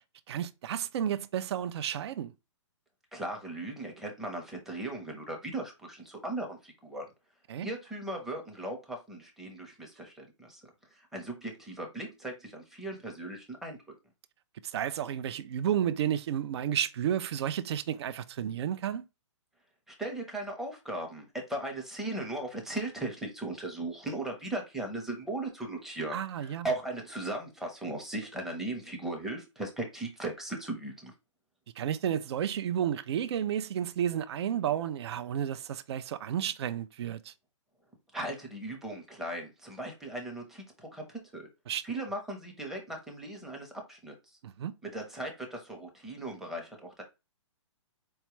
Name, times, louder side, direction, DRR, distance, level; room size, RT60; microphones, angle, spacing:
voice 1, 0.3-2.3 7.5-7.7 14.6-19.0 26.1-26.7 31.8-37.3 41.7-42.0 44.4-44.7, right 9 dB, 55° right, 0.4 m, -32 dB
voice 2, 3.1-7.0 7.6-10.6 10.9-13.8 19.9-31.1 38.1-41.5 41.8-44.4 44.8-47.0, right 2 dB, ahead, 0.7 m, -38 dB
4.3 x 2.3 x 3.0 m
hypercardioid pair, 150°, 16 cm